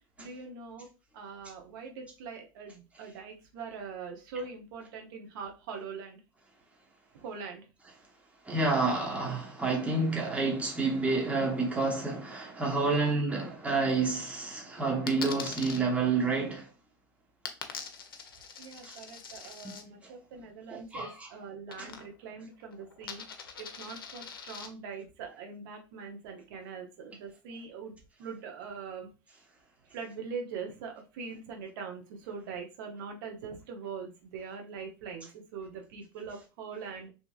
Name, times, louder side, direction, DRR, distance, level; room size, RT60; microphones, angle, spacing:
voice 1, 0.2-0.9 1.1-6.2 7.1-7.6 18.6-23.2 23.6-27.9 28.2-29.1 29.9-35.3 35.5-37.1, right 5 dB, 70° right, 0.8 m, -42 dB
voice 2, 8.5-16.7 18.8-19.0 20.7-21.3 21.8-21.9, right 3 dB, 10° right, 0.9 m, -29 dB
Coin (dropping), 15.1-15.8 17.5-19.8 21.7-22.3 22.6-24.7, left 6 dB, 90° left, 0.5 m, -42 dB
2.9 x 2.7 x 2.3 m
hypercardioid pair, 85°, 12 cm